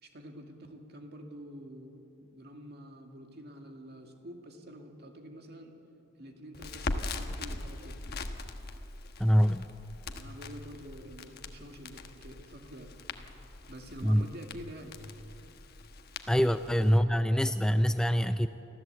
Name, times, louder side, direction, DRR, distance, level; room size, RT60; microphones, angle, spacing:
voice 1, 0.0-5.8 6.2-8.0 10.1-12.9 13.7-14.9 16.3-16.4 16.8-16.9, equal, 55° right, 4 dB, 2.1 m, -47 dB
Crackle, 6.5-17.0, left 2 dB, 50° left, 1.2 m, -41 dB
voice 2, 9.2-9.7 14.0-14.2 16.3-18.5, equal, 5° left, 10 dB, 0.4 m, -25 dB
25.0 x 15.0 x 7.9 m, 2.9 s
head